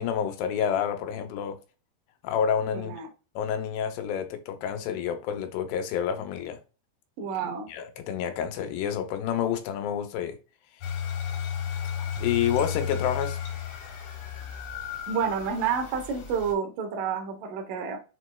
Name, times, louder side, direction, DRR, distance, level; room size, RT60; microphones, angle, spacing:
voice 1, 0.0-1.6 2.2-2.9 3.4-6.6 7.7-10.4 10.8-10.9 12.2-13.4, left 8 dB, 90° left, 2.8 m, -29 dB
voice 2, 2.7-3.1 7.2-7.7 15.1-18.0, right 6 dB, 75° right, 1.9 m, -29 dB
sound 1, 10.8-16.5, left 8 dB, 75° left, 1.5 m, -33 dB
6.8 x 3.1 x 2.2 m
omnidirectional pair, 4.7 m